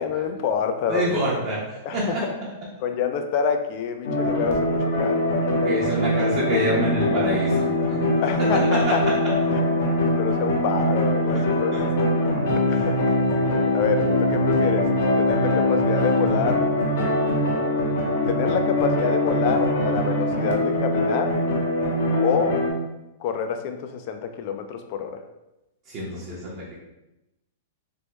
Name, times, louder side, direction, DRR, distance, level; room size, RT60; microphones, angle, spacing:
voice 1, 0.0-1.2 1.8-2.3 2.8-5.5 8.2-9.0 9.7-12.3 12.7-13.2 13.7-14.9 15.2-16.7 18.3-21.4 22.2-22.6 23.2-25.2, left 6 dB, 45° left, 7 dB, 0.3 m, -27 dB
voice 2, 0.9-2.2 5.6-8.0 8.4-9.0 11.3-11.4 11.7-11.8 12.7-12.9 25.9-26.7, right 1 dB, 35° right, -6 dB, 0.7 m, -27 dB
sound 1, 4.0-22.7, left 1 dB, 65° left, 0.7 m, -22 dB
3.4 x 2.1 x 3.0 m, 0.94 s
hypercardioid pair, 150°, 0 cm